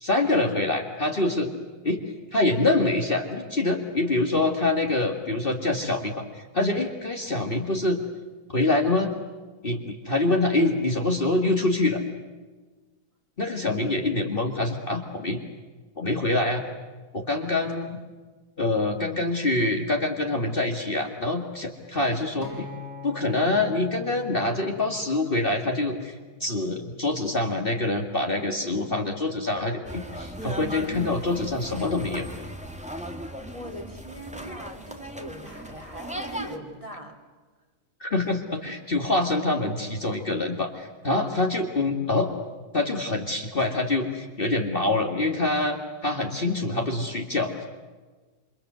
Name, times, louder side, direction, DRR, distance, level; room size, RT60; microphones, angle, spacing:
voice 1, 0.0-1.5 1.8-2.0 2.3-8.0 8.5-9.1 9.6-12.0 13.4-15.4 16.0-16.6 17.1-18.0 18.6-22.6 23.0-26.1 26.4-32.3 38.0-42.3 42.7-47.7, left 2 dB, 35° left, 3 dB, 2.3 m, -25 dB
Acoustic guitar, 22.4-26.7 27.5-27.6, left 6 dB, 55° right, 8.5 m, -43 dB
sound 1, 29.8-36.6, right 1 dB, 5° right, 2.0 m, -37 dB
voice 2, 30.0-30.3 33.3-37.1, right 1 dB, 20° right, 2 dB, 3.5 m, -41 dB
28.0 x 26.5 x 8.1 m, 1.3 s
omnidirectional pair, 1.7 m